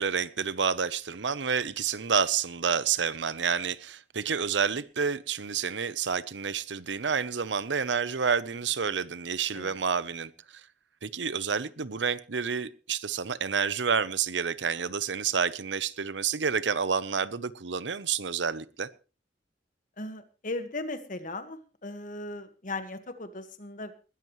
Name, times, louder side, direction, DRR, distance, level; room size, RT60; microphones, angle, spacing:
voice 1, 0.0-10.3 11.0-18.9, right 6 dB, 90° right, 16 dB, 0.8 m, -29 dB
voice 2, 20.0-23.9, left 2 dB, 45° left, 9 dB, 1.6 m, -37 dB
20.5 x 13.5 x 3.2 m, 0.33 s
head